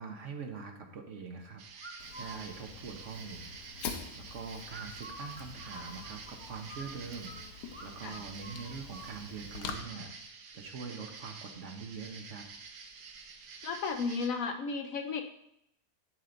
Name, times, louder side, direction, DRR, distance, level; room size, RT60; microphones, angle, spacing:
voice 1, 0.0-1.6 2.2-3.5 3.9-7.3 7.8-10.1 10.5-12.5, right 5 dB, 55° right, 4 dB, 1.1 m, -43 dB
sound 1, 1.6-14.3, right 5 dB, 90° right, 1.5 m, -49 dB
sound 2, 1.8-2.4 4.7-7.4 7.7-9.1, right 2 dB, 15° right, 1.4 m, -47 dB
Fire, 2.0-9.7, left 6 dB, 90° left, 1.5 m, -46 dB
voice 2, 13.6-15.2, left 4 dB, 65° left, 6 dB, 1.0 m, -34 dB
8.3 x 7.6 x 3.8 m, 0.78 s
omnidirectional pair, 1.7 m